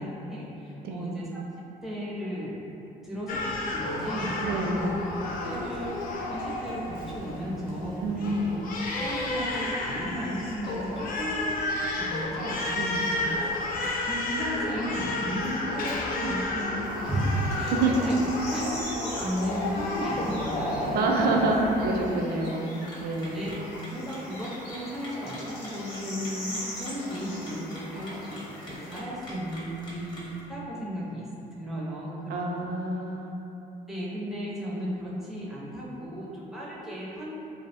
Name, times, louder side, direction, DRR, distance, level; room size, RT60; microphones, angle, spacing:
voice 1, 0.0-1.4 1.8-2.6 3.0-4.9 5.4-6.0 6.3-8.5 8.9-13.5 14.1-21.4 23.3-23.5 23.9-28.4 28.7-30.2 30.5-32.5 33.9-37.4, equal, ahead, -7 dB, 0.5 m, -34 dB
Crying sobbing, 3.3-22.1, left 2 dB, 55° left, 0.4 m, -32 dB
voice 2, 4.4-4.9 8.0-8.6 12.7-13.0 17.7-17.9 20.9-23.6 32.3-33.4, right 3 dB, 65° right, 0 dB, 0.4 m, -27 dB
sound 1, 16.8-29.0, left 1 dB, 85° left, 0.7 m, -40 dB
sound 2, 22.7-30.4, left 1 dB, 25° left, 0.8 m, -46 dB
2.7 x 2.0 x 2.7 m, 2.9 s
cardioid pair, 110°, 17 cm